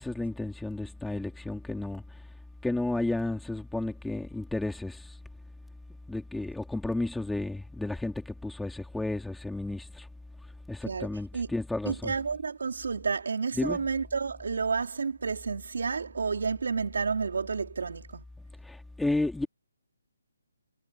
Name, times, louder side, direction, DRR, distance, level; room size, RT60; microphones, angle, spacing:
voice 1, 0.0-2.0 2.6-5.1 6.1-10.1 10.7-12.1 13.6-13.9 18.6-19.5, left 2 dB, ahead, 2.5 m, -32 dB
voice 2, 11.9-18.2, right 5 dB, 65° right, 3.5 m, -30 dB
hypercardioid pair, 175°, 0 cm